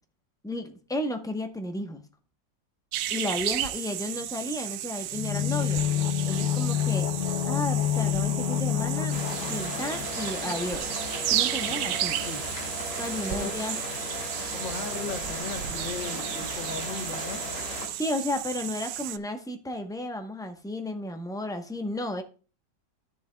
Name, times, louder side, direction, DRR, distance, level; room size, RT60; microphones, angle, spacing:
voice 1, 0.4-2.0 3.1-5.8 6.2-7.1 7.5-9.2 9.5-10.9 11.3-12.2 13.0-13.8 18.0-22.2, left 1 dB, 5° left, 0.4 m, -33 dB
sound 1, 2.9-19.2, right 12 dB, 70° right, 1.0 m, -33 dB
sound 2, 5.1-10.8 11.1-11.2, left 11 dB, 75° left, 1.3 m, -28 dB
sound 3, 9.1-17.9, left 2 dB, 45° left, 2.9 m, -36 dB
voice 2, 11.6-12.5 13.3-13.5 14.5-17.4, left 4 dB, 90° left, 2.0 m, -37 dB
13.0 x 6.9 x 2.2 m
omnidirectional pair, 2.0 m